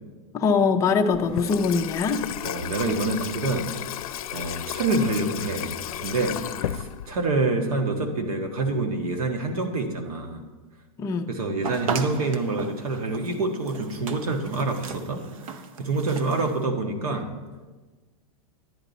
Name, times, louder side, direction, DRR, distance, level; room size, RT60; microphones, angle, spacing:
voice 1, 0.3-2.2 11.0-11.3, left 5 dB, 15° left, 4 dB, 0.5 m, -22 dB
Water tap faucet / Sink (filling or washing), 1.1-7.4, left 11 dB, 85° left, 0.5 m, -33 dB
voice 2, 2.4-3.7 4.3-10.4 11.3-17.3, right 2 dB, 85° right, 4 dB, 1.6 m, -27 dB
sound 1, 11.6-16.6, right 5 dB, 70° right, 0.8 m, -36 dB
10.5 x 10.0 x 4.1 m, 1.3 s
supercardioid pair, 160°, 18 cm